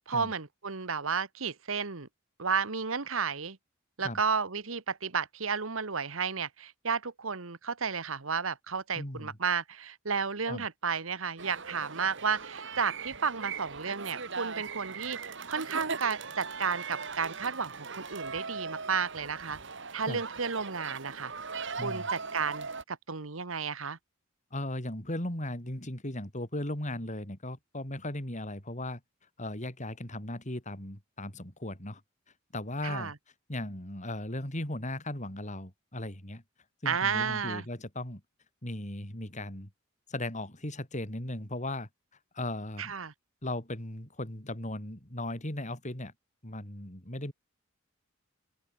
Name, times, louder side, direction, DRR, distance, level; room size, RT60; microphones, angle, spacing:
voice 1, 0.0-2.1 2.4-3.6 4.0-15.2 15.5-19.6 19.9-21.3 21.8-24.0 32.8-33.1 36.8-37.6 42.8-43.1, right 5 dB, 85° right, 1.5 m, -32 dB
voice 2, 9.0-9.4 10.5-10.7 20.1-20.2 21.7-22.1 24.5-29.0 29.4-32.0 32.5-33.1 33.5-36.4 36.8-38.2 38.6-39.7 40.1-41.9 42.3-42.9 43.4-46.1 46.4-47.3, left 1 dB, 35° left, 5.4 m, -37 dB
sound 1, 11.4-22.8, right 5 dB, 65° right, 3.7 m, -39 dB
open air
head